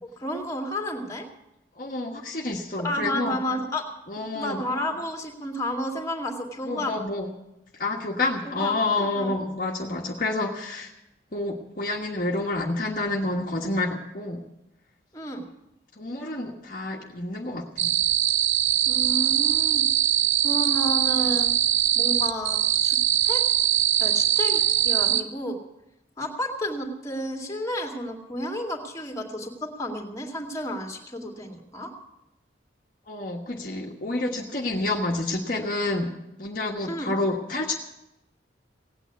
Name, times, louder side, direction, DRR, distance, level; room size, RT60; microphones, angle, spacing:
voice 1, 0.0-1.3 2.8-3.8 4.3-7.0 8.4-9.3 15.1-15.4 18.9-19.9 20.4-21.5 21.9-23.0 23.2-23.4 24.0-25.6 26.2-31.9 36.9-37.1, equal, 15° left, 1 dB, 2.3 m, -31 dB
voice 2, 1.8-3.4 4.1-4.6 6.6-7.3 7.7-10.9 11.3-14.4 16.0-17.9 33.1-36.1 36.4-37.7, left 2 dB, 45° left, 0 dB, 1.4 m, -29 dB
sound 1, 17.8-25.2, right 11 dB, 85° right, 0.8 m, -22 dB
17.5 x 9.1 x 8.1 m, 0.90 s
head